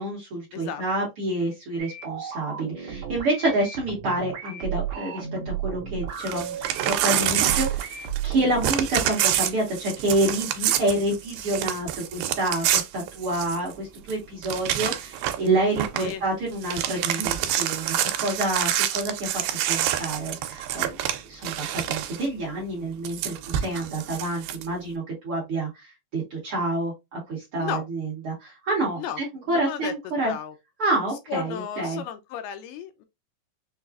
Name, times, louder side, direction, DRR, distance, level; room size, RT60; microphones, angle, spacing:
voice 1, 0.0-19.3 19.7-21.0 21.3-25.9 26.1-30.3 30.8-32.0, right 2 dB, 55° right, 1.7 m, -28 dB
voice 2, 0.5-0.8 16.0-16.2 27.6-27.8 29.0-29.2 29.5-29.9 30.3-30.5 31.3-33.1, left 8 dB, 80° left, 2.1 m, -33 dB
sound 1, 1.8-8.7, right 8 dB, 70° right, 1.8 m, -33 dB
Crumpling crinkling / Tearing, 6.2-8.3 8.6-13.7 14.1-14.2 14.4-15.5 15.8-16.1 16.5-22.2 23.0-24.6, right 11 dB, 90° right, 2.3 m, -27 dB
5.8 x 2.3 x 2.3 m
omnidirectional pair, 4.0 m